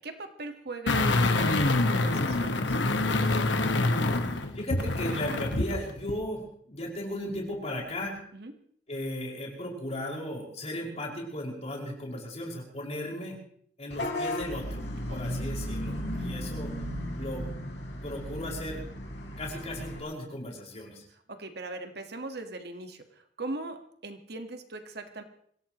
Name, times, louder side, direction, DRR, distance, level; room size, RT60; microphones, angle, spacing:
voice 1, 0.0-2.8 8.3-8.5 15.1-15.5 16.1-16.4 21.3-25.2, right 2 dB, 60° right, 6 dB, 1.6 m, -40 dB
sound 1, 0.9-5.8 6.1-6.2, left 2 dB, 90° left, 1.5 m, -26 dB
voice 2, 4.3-8.2 8.9-13.4 13.8-14.7 15.1-16.7 17.1-17.5 18.0-18.8 19.4-21.0, left 1 dB, 35° left, -2 dB, 5.7 m, -36 dB
Vehicle horn car horn honking / Bus, 13.9-20.0, left 1 dB, 70° left, 4.0 m, -35 dB
25.0 x 17.0 x 3.1 m, 0.62 s
head